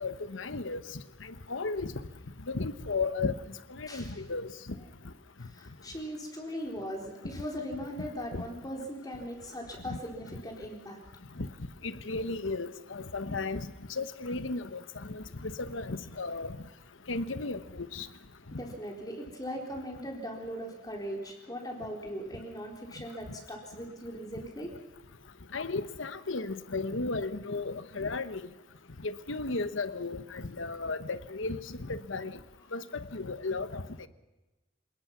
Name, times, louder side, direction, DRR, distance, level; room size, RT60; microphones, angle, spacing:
voice 1, 0.0-0.8 1.2-1.9 2.5-4.8 8.3-8.4 9.8-10.0 11.4-11.5 11.8-16.6 17.1-18.1 25.5-28.4 29.0-32.4 32.7-33.8, left 3 dB, 85° left, 12 dB, 1.2 m, -35 dB
voice 2, 5.4-11.0 18.5-24.7, equal, 20° left, 0 dB, 4.0 m, -39 dB
27.0 x 19.5 x 5.9 m, 1.1 s
head